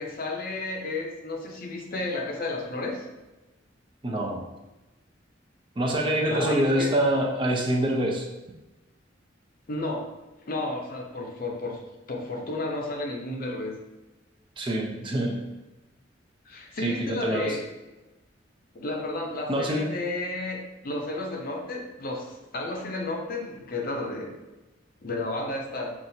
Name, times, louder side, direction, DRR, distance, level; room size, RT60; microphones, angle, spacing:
voice 1, 0.0-3.0 6.3-6.9 9.7-10.1 10.5-11.8 12.1-13.7 16.5-17.6 18.7-24.3 25.0-25.9, left 2 dB, 50° left, 1 dB, 0.7 m, -32 dB
voice 2, 4.0-4.5 5.8-8.2 14.6-15.4 16.8-17.6 19.5-19.9, right 1 dB, 25° right, 0 dB, 0.5 m, -25 dB
5.7 x 2.4 x 2.7 m, 1.1 s
head